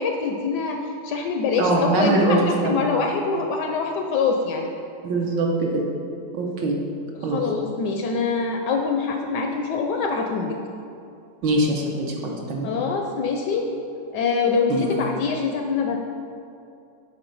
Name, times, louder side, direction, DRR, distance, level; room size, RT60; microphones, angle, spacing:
voice 1, 0.0-4.7 7.1-10.6 12.6-13.7 14.1-16.0, left 4 dB, 75° left, 3 dB, 1.0 m, -24 dB
voice 2, 1.6-2.9 5.0-5.8 6.3-6.8 7.2-7.4 11.4-12.7 14.7-14.9, right 2 dB, 70° right, 0 dB, 1.5 m, -23 dB
7.9 x 4.1 x 5.3 m, 2.5 s
omnidirectional pair, 2.2 m